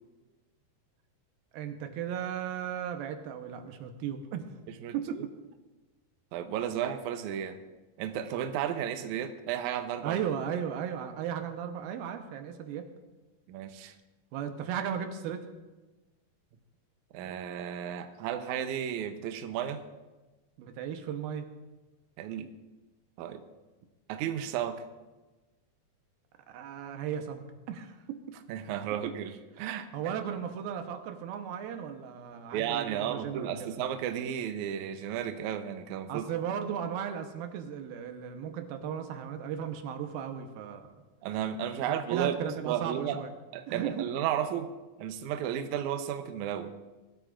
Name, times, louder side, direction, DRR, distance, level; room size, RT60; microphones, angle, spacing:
voice 1, 1.5-4.5 4.9-5.3 10.0-12.9 14.3-15.5 20.6-21.5 26.5-28.4 29.0-29.1 29.6-29.7 29.9-33.8 36.1-40.9 41.9-43.3 43.7-44.1, right 8 dB, 90° right, 6 dB, 2.8 m, -36 dB
voice 2, 6.3-7.6 8.0-10.2 13.5-13.9 17.1-19.8 22.2-22.5 23.2-23.4 24.1-24.8 28.5-29.9 32.5-36.3 41.2-43.2 43.5-44.7 45.0-46.7, right 9 dB, 75° right, 8 dB, 1.9 m, -33 dB
20.5 x 12.5 x 2.5 m, 1.2 s
omnidirectional pair, 4.2 m